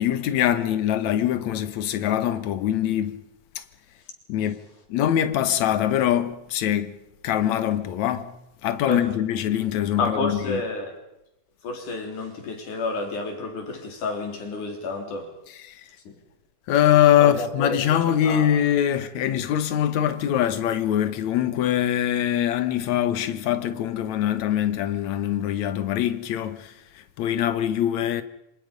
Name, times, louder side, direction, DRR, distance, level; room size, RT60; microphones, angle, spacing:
voice 1, 0.0-3.2 3.6-3.7 4.3-4.6 4.9-7.0 7.2-8.3 8.6-10.6 15.5-15.8 16.7-28.2, left 11 dB, 70° left, 2.5 m, -23 dB
voice 2, 10.0-11.0 11.6-15.3 16.1-16.2 17.2-18.5, left 3 dB, 90° left, 5.2 m, -30 dB
28.0 x 26.0 x 5.3 m
omnidirectional pair, 3.4 m